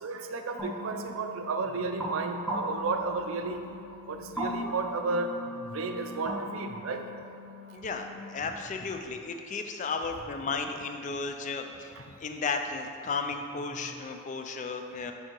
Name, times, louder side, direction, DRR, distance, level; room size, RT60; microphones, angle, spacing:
voice 1, 0.0-3.7 4.1-5.3 5.7-7.0, right 3 dB, 65° right, 5 dB, 0.4 m, -33 dB
sound 1, 0.6-8.2, equal, ahead, 0.8 m, -38 dB
voice 2, 7.7-15.1, left 4 dB, 35° left, 5 dB, 0.3 m, -34 dB
6.7 x 4.8 x 3.0 m, 2.4 s
head